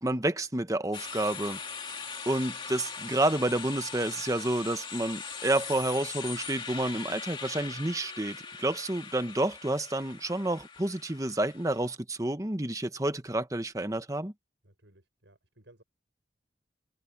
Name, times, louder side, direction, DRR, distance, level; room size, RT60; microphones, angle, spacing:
voice 1, 0.0-1.6 1.9-14.3, right 1 dB, 20° right, 1.1 m, -30 dB
sound 1, 0.9-11.9, left 5 dB, 25° left, 2.5 m, -41 dB
voice 2, 14.6-15.8, right 1 dB, 85° right, 6.9 m, -59 dB
head